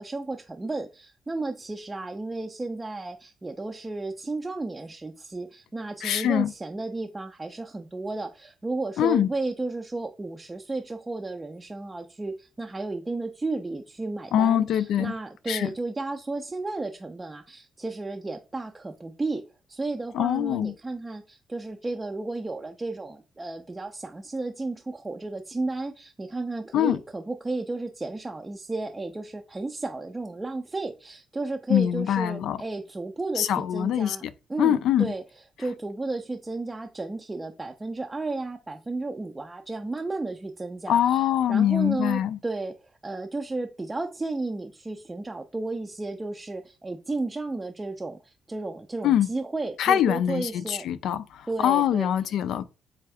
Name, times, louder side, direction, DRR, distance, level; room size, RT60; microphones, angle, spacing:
voice 1, 0.0-34.2 34.5-50.9 51.5-52.1, right 2 dB, 20° right, 0.4 m, -33 dB
voice 2, 6.0-6.5 9.0-9.3 14.3-15.1 15.5-15.7 20.1-20.7 26.7-27.0 31.7-32.6 33.4-34.3 34.6-35.1 40.9-42.4 49.0-49.3 49.8-52.7, left 10 dB, 80° left, 0.3 m, -23 dB
3.4 x 3.2 x 3.4 m
cardioid pair, 90°, 0 cm